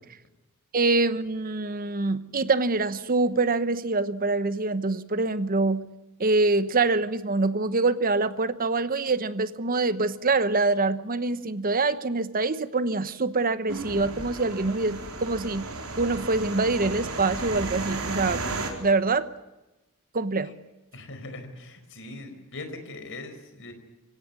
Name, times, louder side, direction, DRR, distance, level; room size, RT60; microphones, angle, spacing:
voice 1, 0.7-5.9 6.2-15.7 16.0-18.4 18.8-19.3 20.1-20.5, right 3 dB, 40° right, 13 dB, 1.0 m, -25 dB
sound 1, 13.7-18.7, right 3 dB, 75° right, 4.2 m, -34 dB
voice 2, 20.9-23.7, left 2 dB, 60° left, 8 dB, 4.6 m, -40 dB
25.0 x 17.0 x 9.7 m, 1.0 s
head